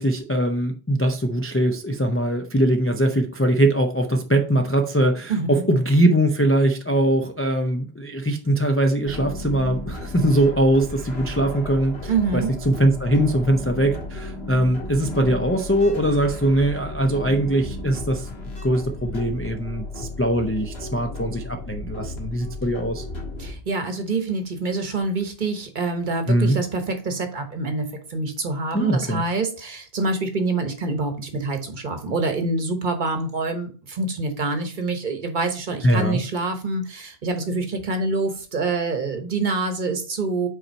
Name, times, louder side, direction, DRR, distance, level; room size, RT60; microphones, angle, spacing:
voice 1, 0.0-18.3 18.6-23.0 26.3-26.6 28.7-29.2 35.8-36.2, right 1 dB, 20° left, 0.4 m, -21 dB
voice 2, 5.3-5.6 12.1-12.5 23.4-40.5, right 3 dB, 50° right, 1.1 m, -26 dB
sound 1, 9.1-23.5, left 2 dB, 75° left, 1.9 m, -34 dB
5.4 x 4.3 x 4.3 m
omnidirectional pair, 1.1 m